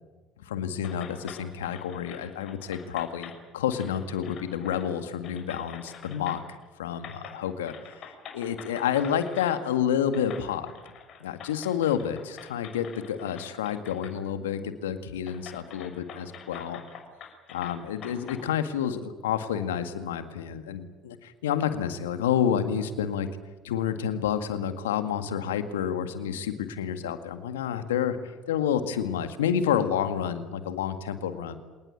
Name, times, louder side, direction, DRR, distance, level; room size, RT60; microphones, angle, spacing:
voice 1, 0.4-6.4 6.8-10.7 11.2-16.8 17.5-23.3 23.6-28.2 28.5-31.6, left 9 dB, 80° left, 9 dB, 1.9 m, -29 dB
sound 1, 0.8-3.4 3.7-4.9 5.2-6.6 7.0-7.4 7.7-9.6 10.1-14.1 14.5-14.6 15.2-18.4, left 7 dB, 55° left, 6.3 m, -45 dB
27.0 x 19.0 x 8.7 m, 1.2 s
hypercardioid pair, 60°, 0 cm